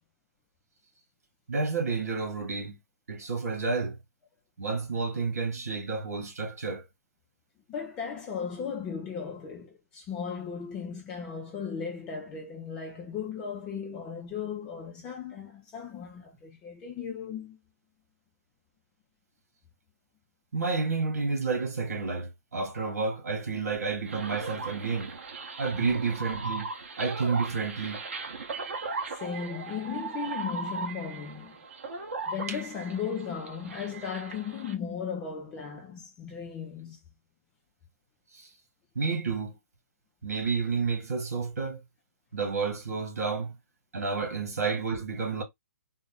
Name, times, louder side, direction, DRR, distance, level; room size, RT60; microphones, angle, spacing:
voice 1, 1.5-2.8 3.1-4.0 4.6-6.8 20.5-25.1 25.6-26.7 27.0-28.0 32.5-32.6 38.4-38.5 39.0-39.6 40.2-41.8 42.3-43.5 43.9-45.4, right 4 dB, 65° right, 1.8 m, -30 dB
voice 2, 7.7-17.6 25.7-25.9 29.1-31.6 32.3-37.0, left 6 dB, 10° left, 0.3 m, -36 dB
sound 1, 24.1-34.7, right 4 dB, 50° right, 1.0 m, -38 dB
4.0 x 2.0 x 3.6 m
hypercardioid pair, 175°, 9 cm